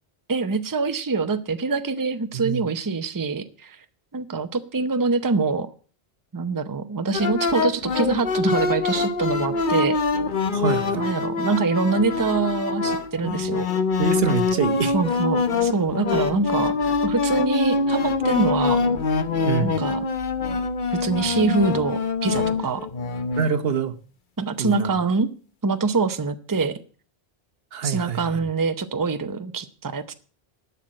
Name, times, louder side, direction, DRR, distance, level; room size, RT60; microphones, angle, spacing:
voice 1, 0.3-3.8 4.1-5.7 6.3-10.0 10.9-13.7 14.9-16.7 17.0-18.8 19.6-20.0 20.9-22.8 24.4-25.3 25.6-26.8 27.8-30.1, right 4 dB, 20° right, 10 dB, 0.7 m, -24 dB
voice 2, 2.3-2.6 10.5-11.0 14.0-14.9 19.4-19.8 23.4-23.9 24.6-25.0 27.7-28.4, right 6 dB, 65° right, 10 dB, 1.1 m, -25 dB
sound 1, 7.1-23.5, left 4 dB, 50° left, 1.1 m, -24 dB
11.5 x 6.9 x 8.6 m, 0.40 s
omnidirectional pair, 1.1 m